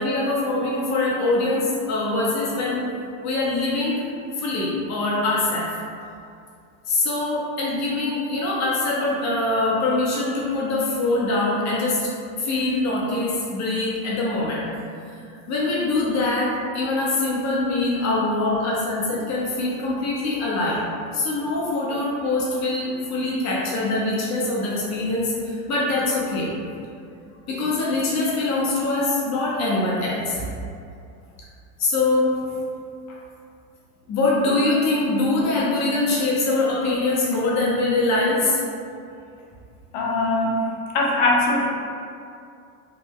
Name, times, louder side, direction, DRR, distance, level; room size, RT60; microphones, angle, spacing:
voice 1, 0.0-2.9 3.2-4.0 4.4-5.7 6.9-12.1 12.4-14.7 15.2-20.8 21.1-26.5 27.5-30.4 31.8-32.6 34.1-38.6, left 2 dB, 40° left, -6 dB, 0.9 m, -23 dB
voice 2, 39.9-40.6 40.9-41.7, left 2 dB, 70° left, -3 dB, 0.9 m, -21 dB
3.3 x 2.2 x 3.5 m, 2.5 s
supercardioid pair, 125°, 42 cm